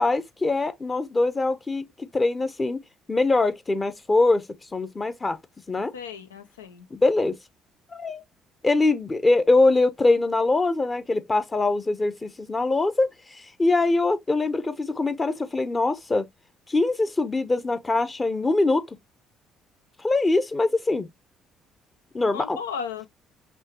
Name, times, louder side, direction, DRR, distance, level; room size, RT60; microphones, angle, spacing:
voice 1, 0.0-2.8 3.1-4.4 4.7-5.4 5.7-5.9 6.9-7.4 7.9-8.2 8.6-13.1 13.6-16.3 16.7-18.8 20.0-21.1 22.1-22.6, left 2 dB, 25° left, 0.8 m, -23 dB
voice 2, 5.9-6.9 22.3-23.1, left 6 dB, 90° left, 0.6 m, -35 dB
5.5 x 3.0 x 2.9 m
hypercardioid pair, 50°, 0 cm